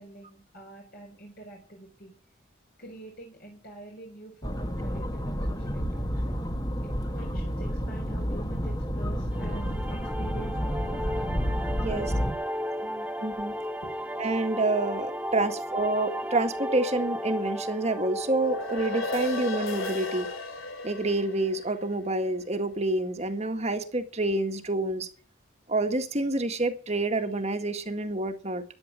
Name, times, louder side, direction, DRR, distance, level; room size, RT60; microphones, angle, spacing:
voice 1, 0.0-2.1 2.8-6.4 6.8-11.4 12.8-13.1 13.8-14.0 15.4-15.5, right 1 dB, 50° left, 0 dB, 4.3 m, -45 dB
sound 1, 4.4-12.3, equal, 20° left, 1.7 m, -30 dB
sound 2, 9.3-20.4, equal, 5° right, 0.9 m, -35 dB
voice 2, 11.7-12.1 13.2-13.5 14.2-20.3 20.8-25.1 25.7-28.6, right 2 dB, 35° right, 7 dB, 1.8 m, -28 dB
sound 3, 18.2-22.8, left 2 dB, 85° left, 3.1 m, -35 dB
14.0 x 10.5 x 7.5 m, 0.39 s
head